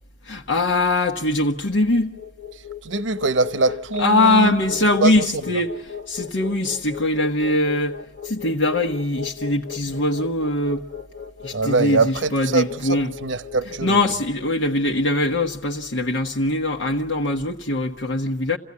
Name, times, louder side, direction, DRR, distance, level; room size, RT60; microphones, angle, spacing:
voice 1, 0.2-2.1 4.0-5.7 6.1-10.9 11.4-13.1 13.8-18.6, left 2 dB, 85° left, 1.3 m, -22 dB
sound 1, 1.9-16.1, left 7 dB, 45° left, 1.0 m, -37 dB
voice 2, 2.5-4.6 5.0-5.3 11.5-14.0, right 3 dB, 80° right, 0.9 m, -23 dB
28.5 x 16.5 x 9.6 m
head